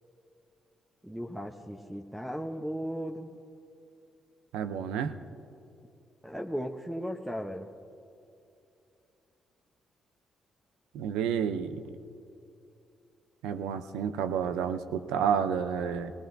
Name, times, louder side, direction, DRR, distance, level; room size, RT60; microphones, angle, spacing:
voice 1, 1.0-3.3 6.2-7.7, equal, 10° right, 2 dB, 0.8 m, -36 dB
voice 2, 4.5-5.1 10.9-11.8 13.4-16.1, right 7 dB, 85° right, 10 dB, 0.6 m, -30 dB
19.0 x 18.5 x 2.7 m, 2.7 s
supercardioid pair, 55°, 0 cm